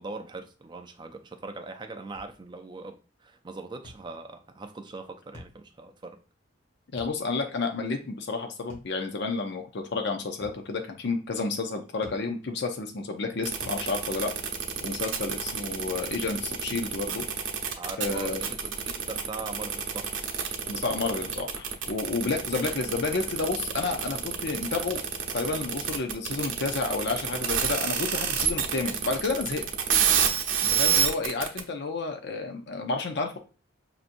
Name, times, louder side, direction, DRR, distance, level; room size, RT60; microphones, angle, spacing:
voice 1, 0.0-3.0 3.2-6.2 17.8-20.1, right 3 dB, 25° right, 0.5 m, -40 dB
sound 1, 2.1-2.4 3.8-4.1 5.3-5.6 7.0-7.2 8.7-9.0 10.4-10.7 12.0-12.3 13.6-13.9, left 1 dB, 40° left, 2.1 m, -47 dB
voice 2, 6.9-14.3 14.8-17.3 18.0-18.4 20.7-25.0 25.3-29.7 30.7-33.4, left 3 dB, 60° left, 0.6 m, -30 dB
sound 2, 13.4-31.6, right 8 dB, 75° right, 0.9 m, -28 dB
5.9 x 2.7 x 2.5 m
head